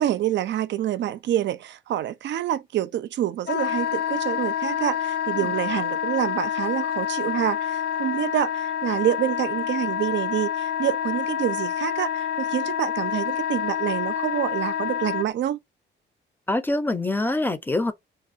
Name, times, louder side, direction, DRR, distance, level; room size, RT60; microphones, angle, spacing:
voice 1, 0.0-15.6, right 11 dB, 65° right, 0.5 m, -27 dB
Wind instrument woodwind instrument, 3.5-15.3, left 8 dB, 50° left, 0.4 m, -27 dB
voice 2, 16.5-17.9, left 2 dB, 10° left, 0.6 m, -25 dB
3.4 x 2.3 x 2.5 m
cardioid pair, 90°, 20 cm